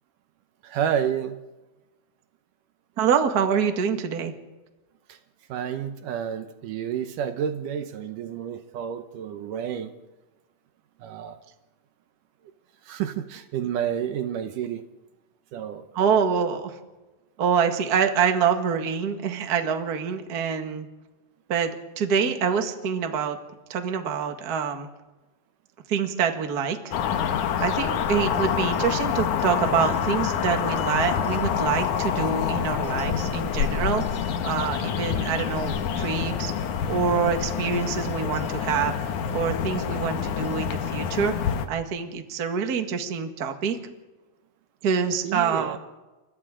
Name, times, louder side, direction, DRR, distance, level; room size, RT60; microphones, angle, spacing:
voice 1, 0.6-1.4 5.1-5.2 5.5-9.9 11.0-11.4 12.9-14.9 15.5-15.9 45.2-45.8, right 9 dB, 75° right, 8 dB, 2.3 m, -30 dB
voice 2, 3.0-4.3 15.9-16.8 17.4-20.9 21.5-23.4 23.7-24.9 25.9-26.9 27.2-36.5 36.9-43.8 44.8-45.8, right 6 dB, 40° right, 5 dB, 1.6 m, -26 dB
sound 1, 26.9-41.7, left 8 dB, 65° left, 2.5 m, -27 dB
30.0 x 26.0 x 3.8 m, 1.1 s
omnidirectional pair, 4.0 m